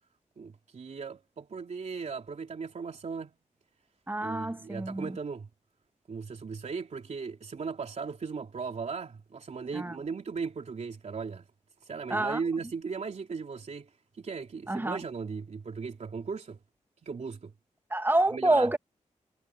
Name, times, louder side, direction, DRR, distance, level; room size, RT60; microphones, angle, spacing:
voice 1, 0.4-3.3 4.2-5.5 6.1-11.5 11.8-16.6 17.0-17.5 18.3-18.7, right 5 dB, 60° right, 3.4 m, -37 dB
voice 2, 4.1-5.2 9.7-10.0 12.1-12.4 14.7-15.0 17.9-18.8, right 1 dB, 15° right, 1.9 m, -27 dB
wide cardioid pair, 85°, 13 cm